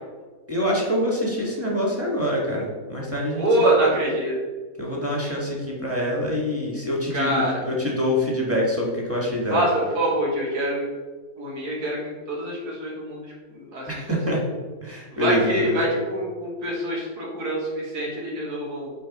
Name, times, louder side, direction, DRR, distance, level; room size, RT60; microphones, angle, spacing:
voice 1, 0.5-3.4 4.8-9.6 13.9-14.4 14.8-15.8, left 1 dB, 10° right, -3 dB, 1.4 m, -25 dB
voice 2, 3.4-4.4 7.1-7.6 9.5-10.9 11.4-14.2 15.1-18.9, right 1 dB, 90° right, -3 dB, 2.4 m, -25 dB
8.4 x 4.1 x 4.2 m, 1.4 s
omnidirectional pair, 1.7 m